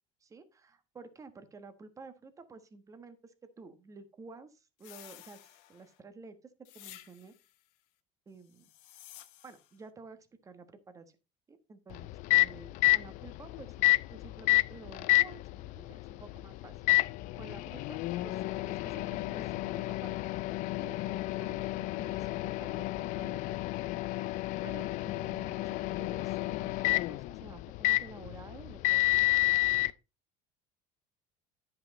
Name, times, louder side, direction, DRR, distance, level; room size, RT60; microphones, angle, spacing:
voice 1, 0.2-6.4 6.7-7.3 8.3-8.7 9.4-11.2 11.5-17.1 17.3-20.2 20.5-23.6 24.2-24.3 24.6-29.8, right 4 dB, 20° right, 10 dB, 1.2 m, -52 dB
sound 1, 4.8-6.0 6.7-7.5 8.5-9.8, left 14 dB, 85° left, 1.1 m, -53 dB
Microwave oven, 11.9-29.9, left 20 dB, 60° left, 0.5 m, -30 dB
10.5 x 5.5 x 4.1 m, 0.29 s
cardioid pair, 135°, 14 cm